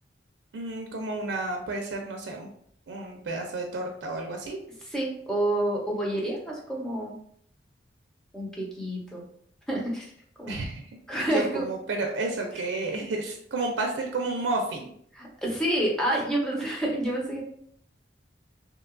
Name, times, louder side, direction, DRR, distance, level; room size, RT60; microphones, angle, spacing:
voice 1, 0.5-2.5 2.9-4.6 10.5-10.9 11.3-14.9, right 2 dB, 85° right, 2 dB, 0.4 m, -31 dB
voice 2, 4.9-7.2 8.3-9.2 9.7-10.1 10.4-10.5 11.1-11.6 15.2-17.4, right 1 dB, 5° left, -4 dB, 0.6 m, -28 dB
2.8 x 2.2 x 2.4 m, 0.64 s
head